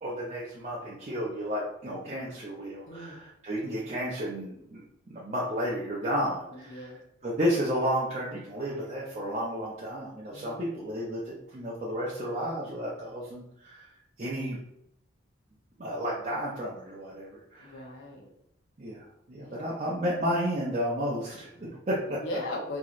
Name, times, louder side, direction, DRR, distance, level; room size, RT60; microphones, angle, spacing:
voice 1, 0.0-6.9 7.2-13.9 14.2-14.6 15.8-17.8 18.8-22.2, equal, 35° right, -6 dB, 0.5 m, -32 dB
voice 2, 6.5-7.0 10.3-10.9 17.6-18.3 19.4-19.8 22.1-22.8, left 1 dB, 70° left, 0 dB, 0.7 m, -39 dB
3.0 x 2.7 x 2.4 m, 0.78 s
head